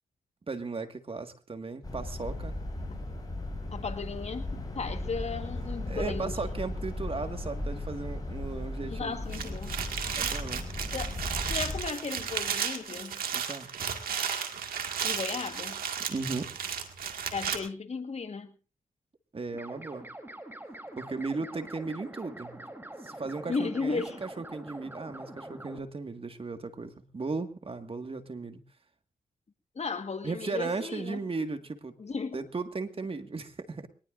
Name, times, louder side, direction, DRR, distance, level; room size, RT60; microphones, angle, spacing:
voice 1, 0.5-2.6 5.9-9.6 10.1-10.7 13.3-13.7 16.1-16.5 19.3-20.1 21.0-22.6 23.0-28.6 30.2-31.9 32.3-33.9, right 3 dB, 40° right, 1.8 m, -36 dB
sound 1, 1.8-11.8, left 1 dB, 25° left, 7.0 m, -36 dB
voice 2, 3.7-6.3 8.8-9.8 10.9-13.2 15.0-15.8 17.3-18.5 23.5-24.2 29.7-31.2 32.0-32.4, left 4 dB, 50° left, 1.6 m, -35 dB
sound 2, 9.2-17.6, right 7 dB, 85° right, 2.0 m, -34 dB
sound 3, 19.5-25.8, right 1 dB, 15° right, 3.4 m, -44 dB
22.5 x 19.0 x 2.6 m
cardioid pair, 60°, 15 cm